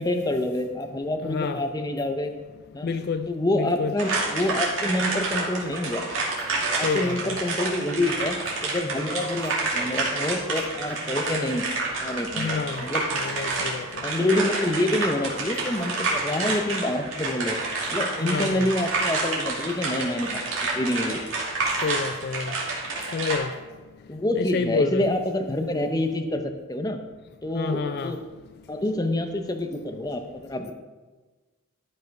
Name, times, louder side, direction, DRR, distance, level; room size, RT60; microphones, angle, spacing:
voice 1, 0.0-2.3 2.7-2.9 3.3-6.1 6.7-8.4 8.6-11.7 12.0-13.1 14.0-17.6 17.9-20.4 20.7-21.2 24.1-27.0 27.4-28.2 28.7-30.7, left 1 dB, 20° left, 6 dB, 0.7 m, -27 dB
voice 2, 1.2-1.6 2.8-3.3 3.6-3.9 6.8-7.3 12.4-12.8 13.1-13.9 18.2-18.7 21.8-22.5 23.1-23.5 24.3-25.0 27.5-28.1, left 5 dB, 50° left, 9 dB, 0.4 m, -28 dB
sound 1, 4.0-23.4, right 3 dB, 65° right, 2.5 m, -29 dB
13.0 x 5.5 x 4.7 m, 1.3 s
head